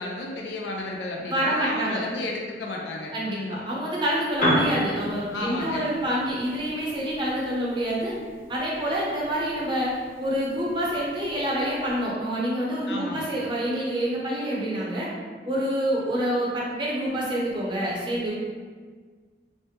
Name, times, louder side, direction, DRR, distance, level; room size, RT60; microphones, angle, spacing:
voice 1, 0.0-3.6 5.3-5.9 12.9-13.3, left 2 dB, 75° left, -1 dB, 0.4 m, -33 dB
voice 2, 1.3-2.0 3.1-8.2 8.5-15.1 15.5-18.3, equal, 25° right, -5 dB, 0.6 m, -27 dB
Piano, 4.3-12.1, equal, 45° left, 0.8 m, -34 dB
3.1 x 2.1 x 3.1 m, 1.5 s
head